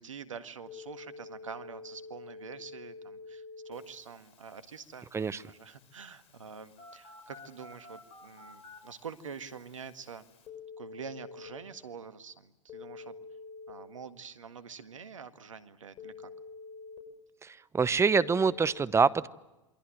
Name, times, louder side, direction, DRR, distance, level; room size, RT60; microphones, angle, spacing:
voice 1, 0.0-10.3 10.8-13.2 13.7-16.3, right 6 dB, 85° right, 10 dB, 1.8 m, -46 dB
Telephone, 0.7-11.5 12.7-13.7 16.0-17.0 18.2-18.7, left 4 dB, 40° left, 7.0 m, -49 dB
voice 2, 17.4-19.3, right 5 dB, 15° right, 17 dB, 0.9 m, -26 dB
28.0 x 23.0 x 7.9 m, 1.0 s
hypercardioid pair, 90°, 16 cm